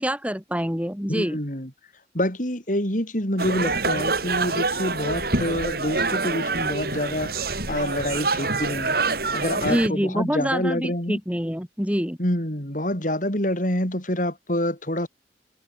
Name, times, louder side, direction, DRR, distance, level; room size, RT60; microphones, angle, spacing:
voice 1, 0.0-1.4 9.6-12.2, equal, 5° right, 5.7 m, -26 dB
voice 2, 1.1-1.7 2.1-9.0 9.3-11.2 12.2-15.1, left 1 dB, 45° left, 6.4 m, -27 dB
sound 1, 3.4-9.9, right 3 dB, 55° right, 7.1 m, -26 dB
head